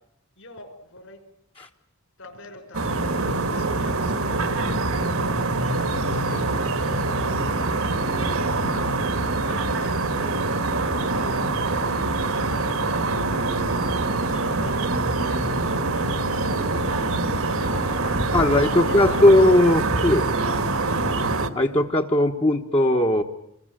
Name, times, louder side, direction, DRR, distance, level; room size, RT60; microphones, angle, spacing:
voice 1, 0.4-1.2 2.2-9.0 9.5-11.9 12.3-13.8 14.2-16.6 17.0-19.6, left 2 dB, 65° left, 7 dB, 5.5 m, -42 dB
gulls in the city, 2.7-21.5, right 2 dB, 70° right, 2.0 m, -24 dB
voice 2, 18.3-20.4 21.5-23.2, left 1 dB, 25° left, 2 dB, 1.2 m, -18 dB
26.5 x 22.0 x 9.1 m, 0.76 s
head